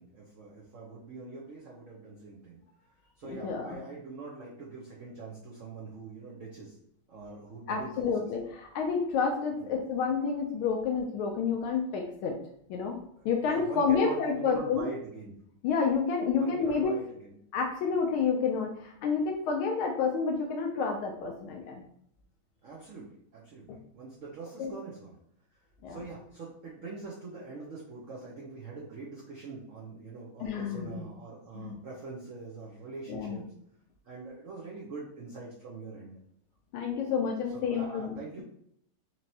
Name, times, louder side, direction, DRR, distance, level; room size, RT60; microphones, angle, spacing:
voice 1, 0.0-2.6 3.2-6.8 7.1-8.3 9.6-9.8 13.2-15.3 16.4-17.3 22.6-25.2 25.9-33.5 34.0-36.2 37.5-38.4, right 3 dB, 90° right, -5 dB, 0.6 m, -43 dB
voice 2, 3.2-3.8 7.7-12.4 12.7-13.0 13.2-14.8 15.6-16.9 17.5-21.8 23.7-23.8 24.6-24.7 25.8-26.0 30.4-31.0 31.6-31.7 33.1-33.4 36.7-38.4, left 5 dB, 80° left, 2 dB, 1.4 m, -29 dB
4.4 x 3.0 x 2.7 m, 0.70 s
omnidirectional pair, 2.4 m